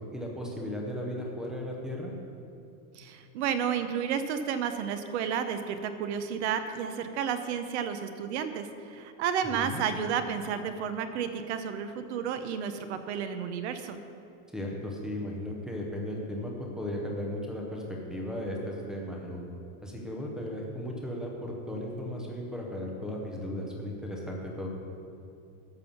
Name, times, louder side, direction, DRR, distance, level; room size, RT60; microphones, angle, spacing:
voice 1, 0.1-2.1 9.6-9.8 14.5-19.4 19.8-24.7, left 1 dB, ahead, -1 dB, 0.6 m, -36 dB
voice 2, 2.9-14.0, right 7 dB, 45° right, 9 dB, 0.7 m, -32 dB
12.5 x 5.4 x 7.0 m, 2.6 s
supercardioid pair, 170°, 47 cm